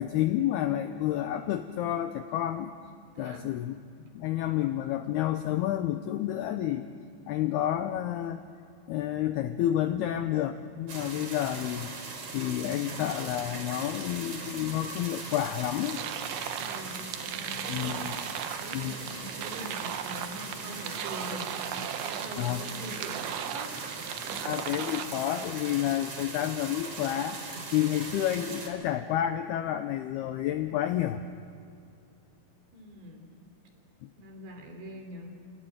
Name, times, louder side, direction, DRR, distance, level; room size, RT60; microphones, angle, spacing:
voice 1, 0.0-2.7 3.2-3.7 4.1-6.9 7.3-8.4 8.9-11.9 12.3-16.0 17.7-18.1 18.7-19.0 22.4-22.6 24.4-27.4 27.7-31.2 34.0-34.1, left 12 dB, 90° left, 8 dB, 2.2 m, -30 dB
voice 2, 3.2-3.5 16.6-18.1 18.6-21.5 22.0-23.8 24.2-24.5 32.7-33.3 34.2-35.3, right 1 dB, 60° right, 3 dB, 5.2 m, -43 dB
sound 1, 10.9-28.7, right 3 dB, 40° right, 4.3 m, -40 dB
sound 2, 15.8-25.1, right 10 dB, 80° right, 2.2 m, -37 dB
29.5 x 19.0 x 9.3 m, 2.5 s
omnidirectional pair, 5.7 m